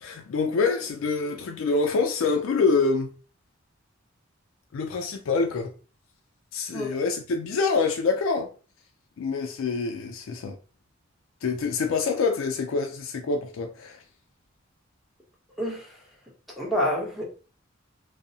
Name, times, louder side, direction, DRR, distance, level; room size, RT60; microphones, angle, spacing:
voice 1, 0.0-3.1 4.7-5.7 6.5-8.5 9.2-10.6 11.4-14.0, left 4 dB, 75° left, 0.3 m, -26 dB
voice 2, 16.6-17.3, equal, ahead, 0.7 m, -27 dB
2.6 x 2.0 x 2.6 m
head